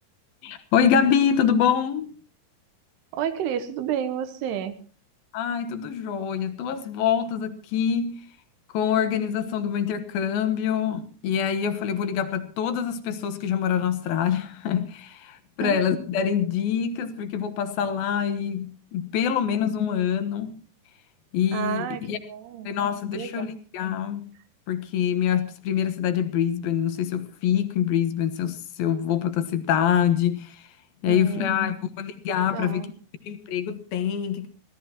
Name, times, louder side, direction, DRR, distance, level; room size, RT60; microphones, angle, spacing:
voice 1, 0.4-2.1 5.3-8.2 8.7-20.5 21.3-22.2 22.7-24.3 24.7-30.6 31.0-32.8 33.3-34.5, left 8 dB, 70° left, 2.9 m, -25 dB
voice 2, 3.1-4.8 15.6-15.8 21.5-22.7 23.1-23.5 31.0-31.7 32.4-32.9, right 9 dB, 85° right, 3.3 m, -31 dB
24.0 x 17.0 x 2.9 m
omnidirectional pair, 4.7 m